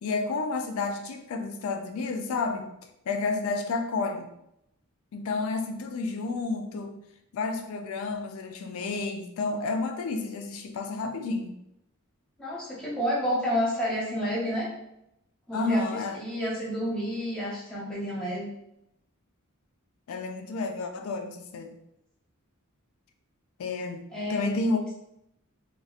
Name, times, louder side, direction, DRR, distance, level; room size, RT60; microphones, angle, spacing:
voice 1, 0.0-2.7 3.1-4.3 5.1-7.0 7.3-11.5 15.5-16.2 20.1-21.8 23.6-24.8, left 3 dB, 70° left, 5 dB, 0.3 m, -30 dB
voice 2, 12.4-14.7 15.5-18.5 24.1-24.5, equal, 5° left, -7 dB, 0.8 m, -30 dB
2.7 x 2.0 x 2.4 m, 0.81 s
head